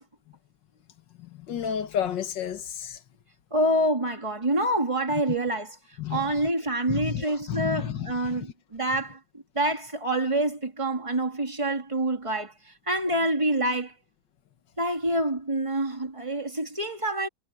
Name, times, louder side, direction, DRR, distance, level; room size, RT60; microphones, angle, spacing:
voice 1, 1.5-3.0 6.0-6.3 6.9-8.4, left 9 dB, 65° left, 2.0 m, -31 dB
voice 2, 3.5-5.8 6.1-13.9 14.8-17.3, right 1 dB, 15° right, 2.6 m, -27 dB
omnidirectional pair, 2.1 m